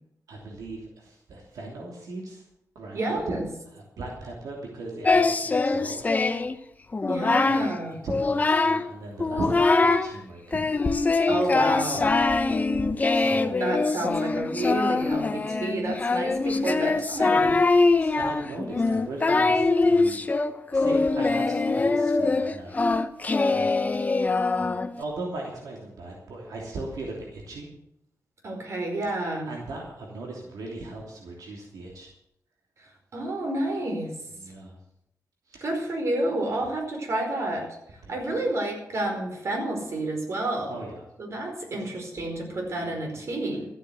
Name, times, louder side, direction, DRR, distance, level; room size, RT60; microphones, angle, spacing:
voice 1, 0.3-2.4 2.7-3.2 3.6-5.9 7.4-7.7 8.0-10.6 11.5-12.7 13.1-13.5 17.4-17.6 18.0-20.2 20.7-22.7 23.5-23.9 24.5-27.7 29.5-32.1 34.4-34.7 35.5-35.6 40.7-41.0, right 2 dB, 85° right, -1 dB, 3.1 m, -38 dB
voice 2, 2.9-3.5 7.1-8.0 11.3-12.1 13.6-17.6 28.4-29.5 32.8-34.2 35.6-37.7 38.1-40.8 41.2-43.7, right 1 dB, 50° right, 2 dB, 4.8 m, -30 dB
Singing, 5.0-6.5 6.9-7.7 8.1-8.9 9.2-10.1 10.5-25.0, left 3 dB, 25° left, 0.9 m, -23 dB
14.0 x 8.8 x 8.1 m, 0.79 s
wide cardioid pair, 125°, 6 cm